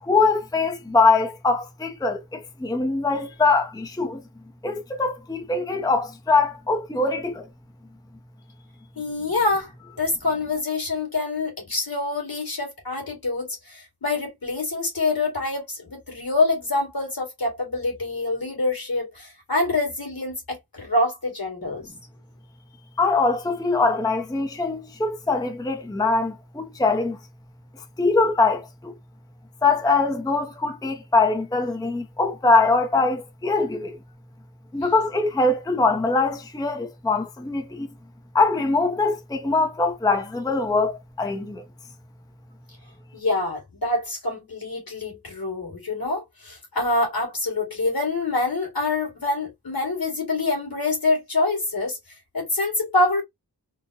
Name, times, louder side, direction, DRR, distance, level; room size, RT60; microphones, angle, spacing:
voice 1, 0.0-4.2 4.6-7.5 23.0-27.2 28.0-28.9 29.6-34.0 34.7-37.9 38.3-41.6, left 3 dB, 10° left, 0.5 m, -22 dB
voice 2, 9.0-9.7 10.0-21.9 43.1-52.0 52.3-53.2, left 2 dB, 65° left, 2.0 m, -26 dB
3.8 x 2.1 x 2.7 m
wide cardioid pair, 45°, 39 cm